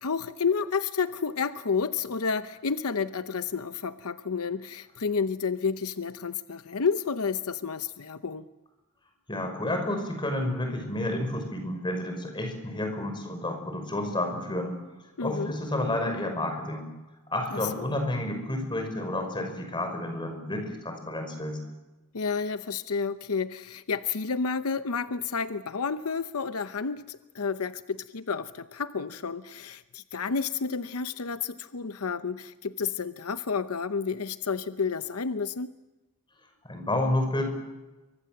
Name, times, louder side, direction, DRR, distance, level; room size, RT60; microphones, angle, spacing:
voice 1, 0.0-8.5 15.2-15.5 17.5-17.9 22.1-35.7, left 5 dB, 80° left, 11 dB, 0.8 m, -30 dB
voice 2, 9.3-14.7 15.2-16.9 17.3-21.6 36.6-37.5, left 1 dB, 20° left, 5 dB, 5.7 m, -30 dB
28.5 x 24.5 x 7.7 m, 1.1 s
head